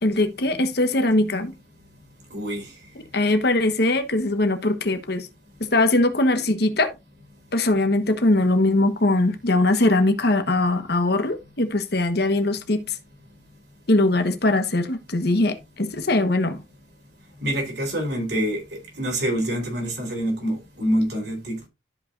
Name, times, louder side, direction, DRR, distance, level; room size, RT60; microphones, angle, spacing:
voice 1, 0.0-1.5 3.1-5.3 5.6-6.9 7.5-12.8 13.9-16.6, left 2 dB, 55° left, 1.2 m, -21 dB
voice 2, 2.3-2.7 17.4-21.7, equal, 55° right, 4.0 m, -26 dB
13.0 x 5.6 x 2.5 m
head